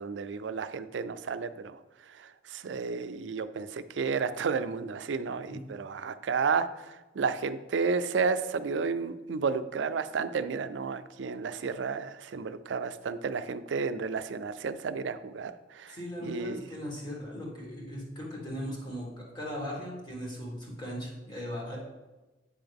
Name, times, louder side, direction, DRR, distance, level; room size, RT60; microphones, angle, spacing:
voice 1, 0.0-1.8 2.1-16.7, right 5 dB, 90° right, 12 dB, 0.4 m, -32 dB
voice 2, 15.9-19.1 19.3-21.8, equal, 25° left, -3 dB, 1.9 m, -38 dB
8.5 x 5.7 x 3.5 m, 1.1 s
head